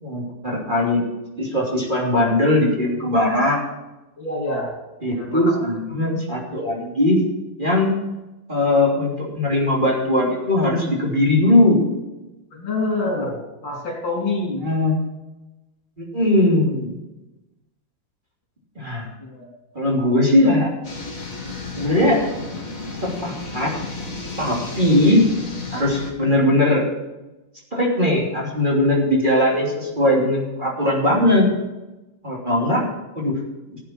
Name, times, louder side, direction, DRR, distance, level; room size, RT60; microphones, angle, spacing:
voice 1, 0.0-1.0 1.4-3.6 5.0-7.2 7.6-7.9 8.5-11.8 14.6-15.0 16.0-16.9 18.8-19.1 19.7-20.7 21.8-22.2 23.0-23.7 24.4-25.2 25.7-26.8 27.7-31.5 32.2-32.9 33.1-33.4 33.7-33.8, left 1 dB, 25° right, -3 dB, 3.1 m, -19 dB
voice 2, 4.2-4.8 5.1-5.6 12.5-13.4 13.6-14.6 19.2-19.5 32.6-33.0, left 2 dB, 70° left, -2 dB, 4.6 m, -27 dB
sound 1, 20.8-26.1, left 3 dB, 45° left, 2.6 m, -33 dB
16.0 x 8.5 x 4.5 m, 1.0 s
omnidirectional pair, 2.1 m